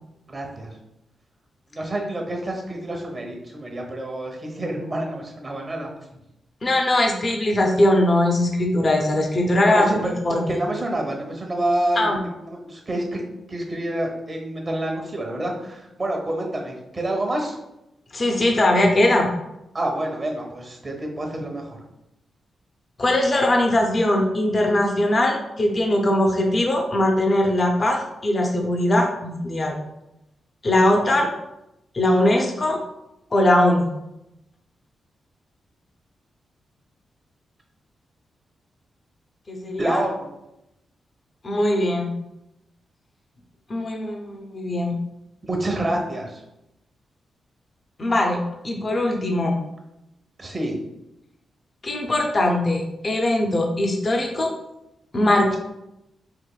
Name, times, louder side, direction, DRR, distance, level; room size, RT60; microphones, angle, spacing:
voice 1, 0.3-0.7 1.7-5.9 9.6-10.1 10.5-13.2 13.5-17.6 19.7-21.8 39.8-40.3 45.5-46.4 50.4-50.7, right 1 dB, 35° right, 1 dB, 0.9 m, -28 dB
voice 2, 6.6-9.9 10.2-10.6 12.0-12.2 18.1-19.3 23.0-29.8 30.6-31.3 31.9-32.8 33.3-33.9 39.5-40.0 41.4-42.1 43.7-44.9 48.0-49.6 51.8-54.5 55.1-55.6, left 1 dB, 40° left, 1 dB, 0.6 m, -20 dB
4.6 x 2.5 x 2.3 m, 0.89 s
cardioid pair, 80°, 0 cm